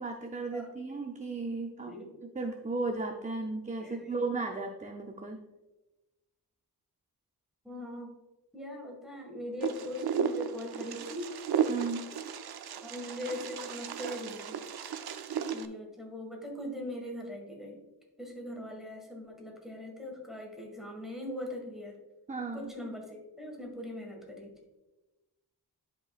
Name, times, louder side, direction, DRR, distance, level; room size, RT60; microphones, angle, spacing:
voice 1, 0.0-1.9 2.2-5.4 11.7-12.1 22.3-22.7, right 3 dB, 20° right, 3 dB, 0.5 m, -35 dB
voice 2, 1.8-2.1 3.8-4.2 7.6-8.1 8.5-11.3 12.8-14.6 15.5-17.8 18.2-22.0 22.5-24.5, left 1 dB, ahead, -1 dB, 1.8 m, -41 dB
Wind, 9.6-15.7, right 7 dB, 70° right, 0.6 m, -34 dB
12.0 x 5.3 x 2.4 m, 1.1 s
wide cardioid pair, 125°, 40 cm